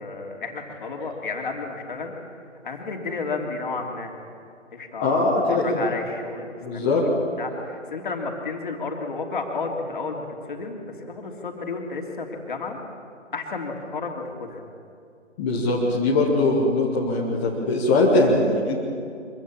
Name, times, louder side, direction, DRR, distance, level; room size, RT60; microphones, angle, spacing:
voice 1, 0.0-2.1 2.6-4.2 4.7-12.8 13.3-14.6, left 4 dB, 40° left, 2 dB, 3.1 m, -32 dB
voice 2, 5.0-5.8 6.6-7.0 15.4-18.8, left 2 dB, 10° left, -5 dB, 1.2 m, -21 dB
24.5 x 16.0 x 8.8 m, 2.4 s
figure-of-eight pair, 155°, 37 cm